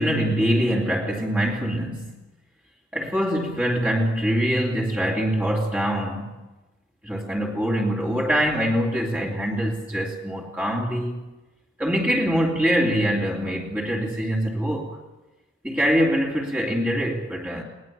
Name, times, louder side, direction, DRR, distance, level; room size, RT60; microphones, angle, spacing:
voice 1, 0.0-2.1 2.9-6.3 7.0-11.2 11.8-15.0 15.6-17.6, equal, 10° right, -4 dB, 2.8 m, -24 dB
21.0 x 19.0 x 7.3 m, 1.1 s
head